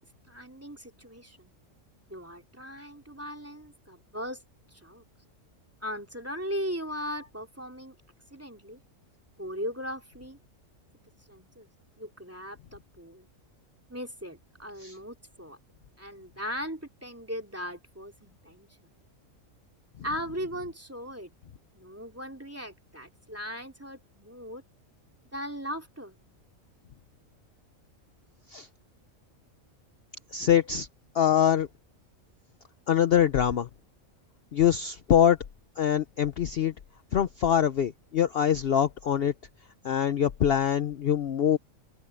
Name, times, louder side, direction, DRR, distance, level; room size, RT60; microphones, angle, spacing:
voice 1, 0.3-1.5 2.1-4.4 4.7-5.0 5.8-7.9 8.3-8.8 9.4-10.4 11.3-11.7 12.0-13.3 13.9-15.6 16.0-18.9 20.0-21.3 21.7-24.6 25.3-26.2, equal, 10° right, 2.9 m, -38 dB
voice 2, 30.3-30.9 31.1-31.7 32.9-33.7 34.5-35.4 35.8-36.7 37.1-39.3 39.8-41.6, left 9 dB, 55° left, 0.8 m, -24 dB
open air
omnidirectional pair, 1.4 m